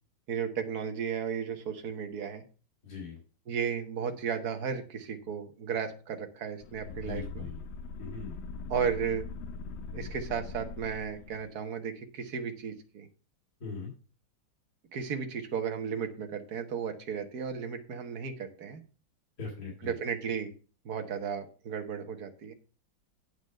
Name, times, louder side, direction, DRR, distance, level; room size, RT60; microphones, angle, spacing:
voice 1, 0.3-2.4 3.5-7.5 8.7-9.3 9.9-13.1 14.9-18.8 19.8-20.5 20.9-22.5, right 7 dB, 55° right, 6 dB, 1.7 m, -34 dB
voice 2, 2.8-3.2 6.9-7.6 8.0-8.4 13.6-13.9 19.4-19.9, left 5 dB, 50° left, -3 dB, 3.7 m, -41 dB
sound 1, 6.6-11.5, left 3 dB, 85° left, 1.7 m, -41 dB
9.5 x 5.1 x 6.5 m, 0.36 s
omnidirectional pair, 2.1 m